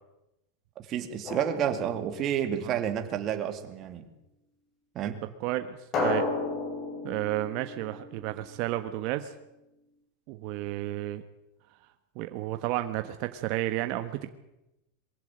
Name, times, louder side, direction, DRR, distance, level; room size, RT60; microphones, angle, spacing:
voice 1, 0.8-4.1 4.9-5.2, right 9 dB, 35° right, 7 dB, 2.6 m, -30 dB
Drum, 1.3-2.8 5.9-8.7, left 3 dB, 35° left, 6.0 m, -33 dB
voice 2, 5.4-6.2 7.0-9.3 10.3-11.2 12.1-14.3, right 15 dB, 50° right, 8 dB, 1.3 m, -32 dB
22.5 x 15.5 x 9.0 m, 0.92 s
supercardioid pair, 150°, 0 cm